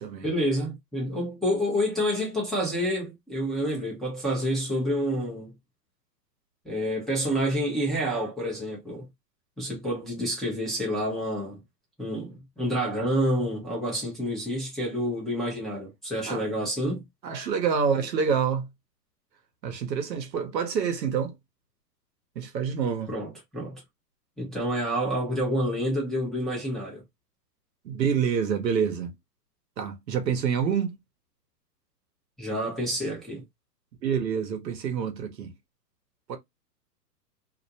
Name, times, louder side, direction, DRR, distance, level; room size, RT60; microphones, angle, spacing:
voice 1, 0.2-5.5 6.6-9.1 9.6-11.6 12.0-17.0 23.1-23.8 24.4-27.0 32.4-33.4, equal, ahead, 0.6 m, -28 dB
voice 2, 17.2-18.7 19.6-21.3 22.4-23.1 27.8-29.1 29.8-31.0 34.0-35.5 36.3-36.4, right 7 dB, 85° right, 1.0 m, -27 dB
2.5 x 2.1 x 2.7 m
hypercardioid pair, 130°, 49 cm